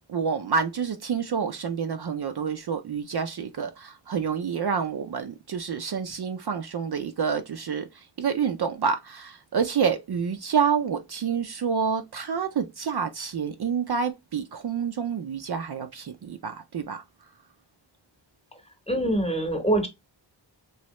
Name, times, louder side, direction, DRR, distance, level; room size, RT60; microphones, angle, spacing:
voice 1, 0.1-17.0, right 6 dB, 55° right, 0.5 m, -28 dB
voice 2, 18.9-19.9, right 1 dB, 15° left, 0.9 m, -24 dB
3.0 x 2.7 x 3.0 m
wide cardioid pair, 70°, 48 cm